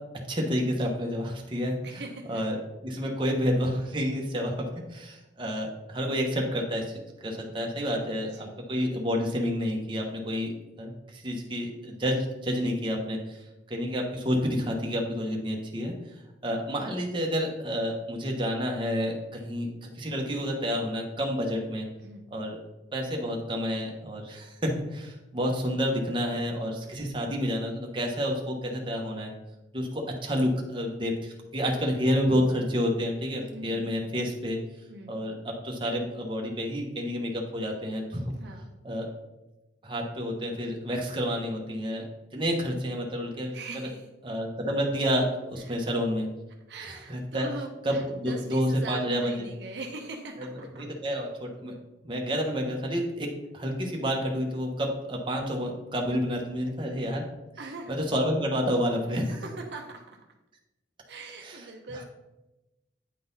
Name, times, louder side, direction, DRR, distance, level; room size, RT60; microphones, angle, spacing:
voice 1, 0.3-1.8 2.3-2.6 2.8-10.5 10.8-15.9 16.4-21.9 22.3-22.6 22.9-29.3 29.7-34.6 35.1-38.3 38.8-39.1 39.8-42.1 42.3-43.6 44.2-46.3 46.8-47.5 47.8-49.4 50.4-50.5 50.8-51.7 52.0-53.3 53.5-57.2 57.9-59.4 61.4-61.6 61.9-62.0, equal, 25° right, 0 dB, 0.9 m, -29 dB
voice 2, 1.8-2.4 8.2-8.6 22.0-22.3 33.5-33.9 34.9-35.1 38.3-38.7 43.5-44.1 45.6-45.9 46.7-50.9 57.6-58.0 59.1-60.2 61.1-62.0, right 2 dB, 60° right, 2 dB, 0.8 m, -41 dB
9.2 x 3.9 x 4.0 m, 1.0 s
head